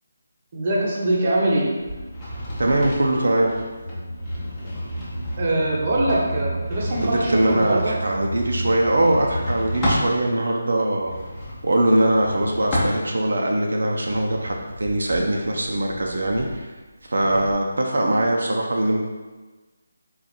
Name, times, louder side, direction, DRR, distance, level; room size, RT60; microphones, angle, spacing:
voice 1, 0.5-1.7 5.4-7.9 17.2-17.4, right 1 dB, 30° right, -4 dB, 0.7 m, -23 dB
sound 1, 1.8-10.1 10.9-13.4 13.9-17.5, equal, 10° left, 0.7 m, -33 dB
voice 2, 2.6-3.5 7.0-11.1 11.6-16.7 17.0-19.0, right 1 dB, 75° right, 0 dB, 0.6 m, -21 dB
sound 2, 3.8-9.8, equal, 75° left, 0.9 m, -31 dB
3.9 x 2.5 x 4.2 m, 1.2 s
figure-of-eight pair, 175°, 0 cm